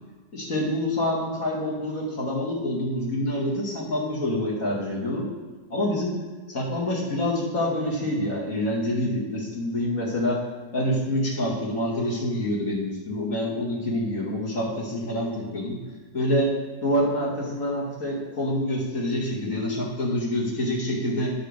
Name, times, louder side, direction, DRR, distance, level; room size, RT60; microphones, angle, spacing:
voice 1, 0.3-5.3 5.7-6.2 6.5-10.4 10.7-15.8 16.1-16.5 16.8-21.3, left 1 dB, 45° left, -5 dB, 2.5 m, -26 dB
9.1 x 4.9 x 6.7 m, 1.3 s
omnidirectional pair, 2.1 m